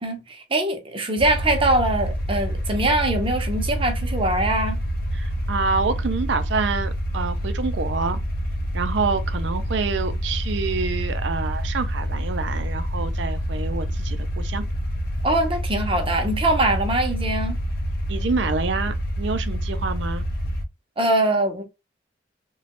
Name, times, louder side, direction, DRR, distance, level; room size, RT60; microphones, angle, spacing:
voice 1, 0.0-4.8 15.2-17.6 21.0-21.6, right 1 dB, 30° right, 0.7 m, -22 dB
sound 1, 1.2-20.6, equal, 55° left, 0.6 m, -27 dB
voice 2, 5.1-8.2 8.7-14.7 18.1-20.2, right 4 dB, 75° right, 0.5 m, -27 dB
3.1 x 2.2 x 2.9 m
head